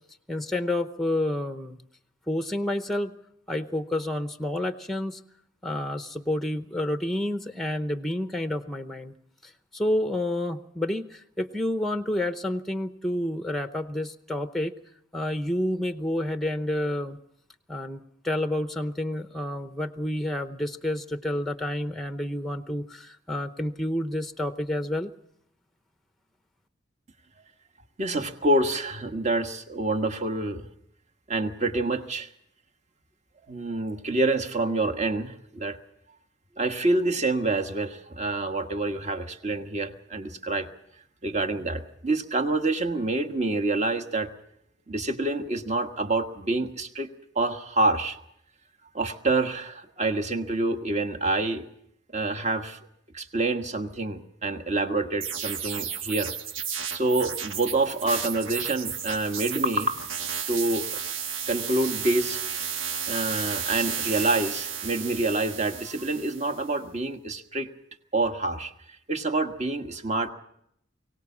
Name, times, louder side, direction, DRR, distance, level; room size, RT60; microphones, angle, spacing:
voice 1, 0.3-1.8 2.3-3.2 3.5-5.2 5.6-9.1 9.4-14.7 15.1-17.2 17.7-25.1, left 1 dB, ahead, 9 dB, 0.7 m, -29 dB
voice 2, 28.0-30.7 31.3-32.3 33.5-35.8 36.6-40.7 41.2-44.3 44.9-47.1 47.3-48.2 48.9-51.7 52.1-52.8 53.1-56.3 56.9-60.1 60.5-60.9 61.5-62.4 63.1-67.7 68.1-68.7 69.1-70.3, right 2 dB, 35° right, 6 dB, 1.5 m, -27 dB
sound 1, 55.2-66.6, right 7 dB, 80° right, 1.5 m, -33 dB
23.0 x 18.0 x 7.2 m, 0.72 s
head